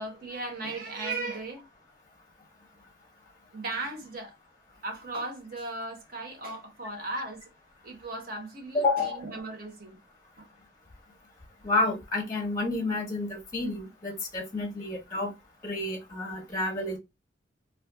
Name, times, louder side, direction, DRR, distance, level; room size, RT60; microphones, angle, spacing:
voice 1, 0.0-1.6 3.5-4.3 4.8-7.4 7.8-10.0 10.4-10.5, right 2 dB, 50° right, 1.0 m, -36 dB
voice 2, 8.7-9.2 11.6-15.3 15.6-17.0, left 2 dB, 20° left, 0.7 m, -29 dB
2.4 x 2.2 x 3.5 m
head